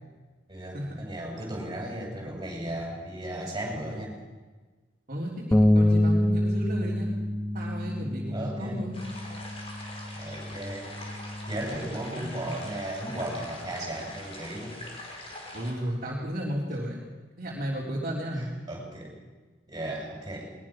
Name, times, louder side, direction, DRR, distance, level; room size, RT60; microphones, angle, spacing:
voice 1, 0.5-4.1 8.3-8.9 10.2-10.9 11.5-14.8 18.3-19.1 19.7-20.5, right 1 dB, 20° right, -1 dB, 7.1 m, -35 dB
voice 2, 5.1-7.1 7.5-9.0 11.9-12.3 15.5-17.0 17.4-18.5, equal, 45° right, -5 dB, 3.6 m, -33 dB
Bass guitar, 5.5-11.8, left 1 dB, 10° left, 1.0 m, -27 dB
sound 1, 8.9-15.7, left 1 dB, 35° left, 5.0 m, -43 dB
21.5 x 21.0 x 6.2 m, 1.3 s
head